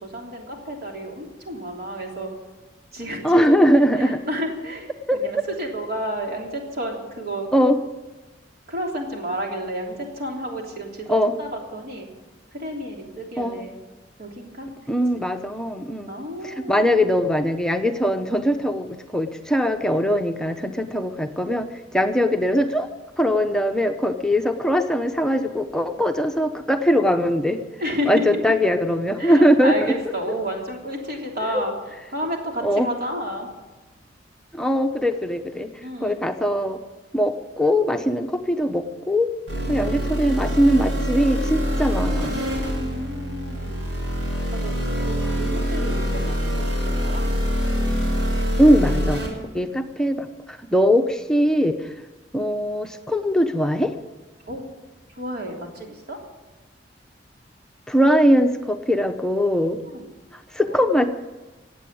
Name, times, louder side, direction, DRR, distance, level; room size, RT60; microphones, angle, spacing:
voice 1, 0.0-2.3 2.9-3.5 4.0-7.5 8.7-12.1 12.5-13.8 14.2-14.7 16.1-17.0 26.0-26.1 27.8-28.4 29.2-31.7 32.1-33.5 35.8-36.3 39.6-40.1 42.8-43.9 44.6-44.7 45.0-47.2 54.5-54.7 55.1-56.2 59.8-60.1 60.7-60.8, equal, 55° right, 0 dB, 3.2 m, -31 dB
voice 2, 3.2-4.2 5.1-5.2 7.5-7.8 11.1-11.3 13.4-13.7 14.9-16.1 16.4-21.7 21.9-22.9 23.2-27.6 28.1-29.9 31.5-31.6 32.6-32.9 34.5-35.7 36.0-36.8 37.1-39.3 39.7-42.4 48.6-49.2 49.5-50.3 50.7-51.8 52.3-53.9 57.9-59.8 60.5-61.1, equal, 5° left, 6 dB, 0.9 m, -21 dB
sound 1, 39.5-49.3, equal, 85° right, 6.3 m, -25 dB
16.5 x 8.4 x 8.6 m, 1.2 s
head